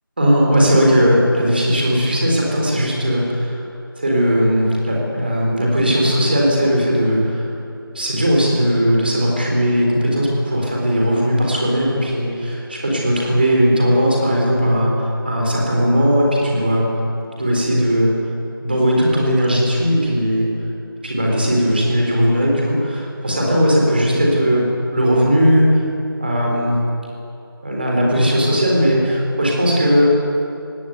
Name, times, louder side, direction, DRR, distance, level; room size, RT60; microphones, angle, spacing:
voice 1, 0.2-3.6 4.0-7.5 7.9-16.9 17.4-18.1 18.6-20.5 21.0-24.6 24.9-25.8 26.2-26.7 27.6-30.1, equal, 25° right, -2 dB, 4.1 m, -17 dB
19.0 x 17.5 x 9.3 m, 2.7 s
figure-of-eight pair, 175°, 12 cm